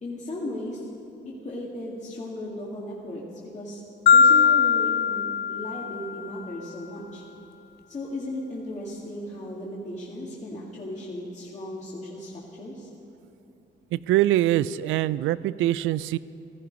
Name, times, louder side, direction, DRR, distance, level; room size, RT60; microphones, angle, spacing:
voice 1, 0.0-0.9 1.2-3.8 4.1-7.2 7.9-12.9, left 1 dB, 35° left, -5 dB, 2.2 m, -36 dB
Marimba xylophone, 4.1-6.3, left 6 dB, 55° left, 0.5 m, -20 dB
voice 2, 13.9-16.2, right 14 dB, 85° right, 18 dB, 0.4 m, -23 dB
15.5 x 14.5 x 5.3 m, 2.9 s
cardioid pair, 90°, 20 cm